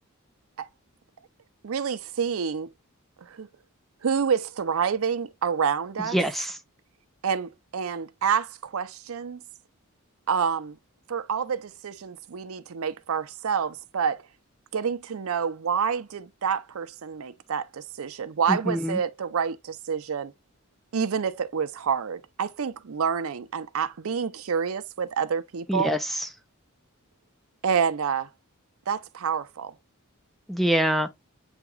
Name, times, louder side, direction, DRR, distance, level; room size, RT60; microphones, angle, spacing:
voice 1, 1.6-2.7 3.2-3.5 4.0-6.2 7.2-9.4 10.3-10.8 11.1-14.2 14.7-20.3 20.9-25.9 27.6-28.3 28.9-29.7, right 6 dB, 70° right, 0.5 m, -28 dB
voice 2, 6.1-6.5 18.5-19.0 25.7-26.0 30.5-31.1, equal, ahead, 0.3 m, -24 dB
8.0 x 2.9 x 2.2 m
head